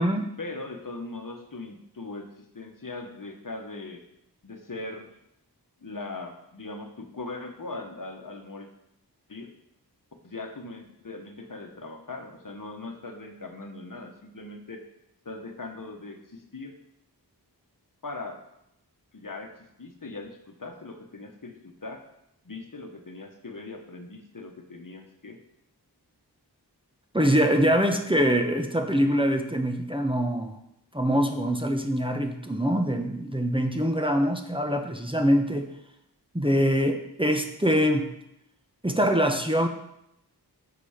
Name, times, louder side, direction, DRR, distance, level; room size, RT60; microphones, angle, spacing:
voice 1, 0.4-4.0 4.4-5.1 5.8-8.7 9.3-9.5 10.2-14.8 15.2-16.7 18.0-18.4 19.1-22.0 22.4-25.4, left 3 dB, 50° left, 4 dB, 1.2 m, -40 dB
voice 2, 27.1-30.6 30.9-35.7 36.3-38.1 38.8-39.7, equal, 15° right, 4 dB, 0.9 m, -24 dB
8.4 x 6.0 x 5.0 m, 0.79 s
wide cardioid pair, 50°, 40 cm